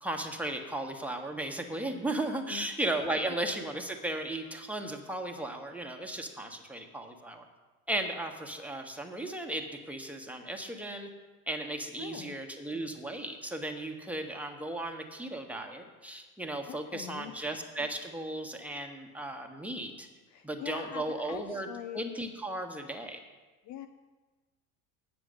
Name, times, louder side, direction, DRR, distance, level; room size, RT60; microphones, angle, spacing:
voice 1, 0.0-7.4 7.9-11.1 11.5-20.1 20.4-21.7 21.9-23.2, right 1 dB, 5° right, 2 dB, 1.3 m, -36 dB
voice 2, 12.0-12.4 16.7-17.3 20.3-22.0 23.6-23.9, left 10 dB, 40° left, 8 dB, 0.6 m, -43 dB
9.2 x 7.0 x 6.6 m, 1.3 s
hypercardioid pair, 80°, 45 cm